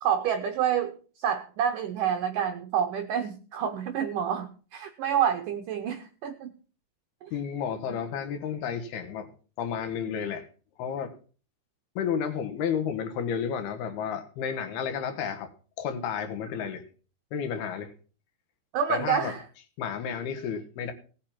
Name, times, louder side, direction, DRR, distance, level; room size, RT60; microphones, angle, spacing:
voice 1, 0.0-6.5 7.2-7.3 18.7-19.4, right 8 dB, 75° right, 6 dB, 1.9 m, -28 dB
voice 2, 7.3-9.3 9.6-10.5 10.8-11.2 12.0-15.5 15.8-16.8 17.3-17.9 18.9-19.3 19.8-20.9, left 7 dB, 70° left, 8 dB, 3.0 m, -31 dB
17.5 x 6.9 x 5.8 m, 0.39 s
omnidirectional pair, 4.9 m